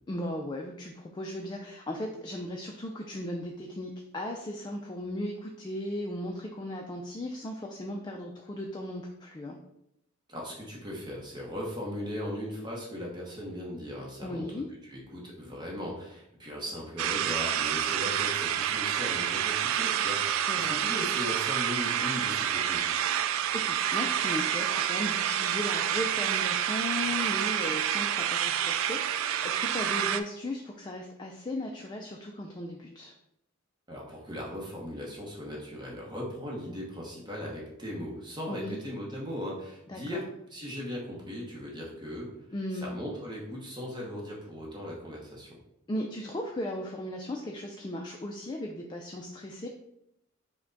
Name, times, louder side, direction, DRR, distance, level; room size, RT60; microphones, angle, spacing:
voice 1, 0.1-9.6 14.2-14.7 20.4-20.8 23.5-33.1 38.5-38.8 39.9-40.2 42.5-42.9 45.9-49.7, left 1 dB, 20° left, 1 dB, 0.3 m, -36 dB
voice 2, 10.3-14.5 14.9-23.0 33.9-40.2 40.5-42.3 42.7-45.5, equal, 20° right, -3 dB, 0.9 m, -38 dB
sound 1, 17.0-30.2, right 9 dB, 70° right, 0.3 m, -28 dB
5.8 x 2.2 x 3.9 m, 0.81 s
head